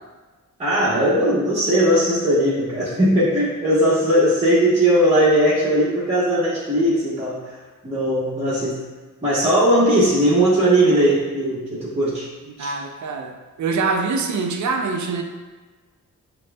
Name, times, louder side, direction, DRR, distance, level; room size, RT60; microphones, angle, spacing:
voice 1, 0.6-7.4 7.8-8.8 9.2-12.3 12.6-12.7, right 1 dB, 20° right, -9 dB, 1.1 m, -18 dB
voice 2, 12.6-15.2, right 4 dB, 65° right, 4 dB, 0.5 m, -24 dB
6.3 x 2.2 x 2.3 m, 1.3 s
cardioid pair, 70°, 32 cm